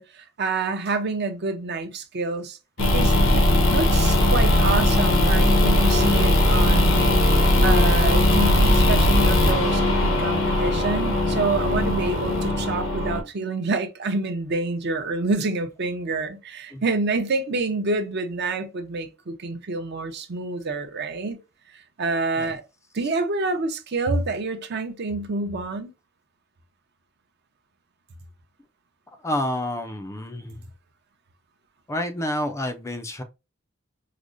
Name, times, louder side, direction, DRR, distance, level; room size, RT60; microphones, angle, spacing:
voice 1, 0.0-3.4 3.7-21.4 21.7-22.6 22.9-25.9, right 3 dB, 55° right, 0.6 m, -27 dB
sound 1, 2.8-13.2, left 1 dB, 90° left, 0.9 m, -19 dB
voice 2, 29.2-30.6 31.9-33.2, left 1 dB, 15° left, 0.4 m, -29 dB
4.8 x 2.0 x 2.5 m
head